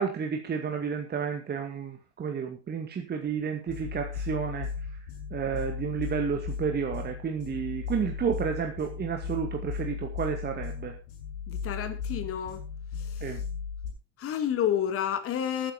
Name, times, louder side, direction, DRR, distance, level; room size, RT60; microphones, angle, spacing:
voice 1, 0.0-4.7 5.3-10.9 13.2-13.4, right 7 dB, 25° right, 2.2 m, -31 dB
sound 1, 3.7-13.9, left 6 dB, 65° left, 6.8 m, -36 dB
voice 2, 11.5-12.6 13.0-13.4 14.2-15.7, left 9 dB, 40° left, 2.3 m, -30 dB
12.5 x 10.0 x 5.1 m
figure-of-eight pair, 75°, 36 cm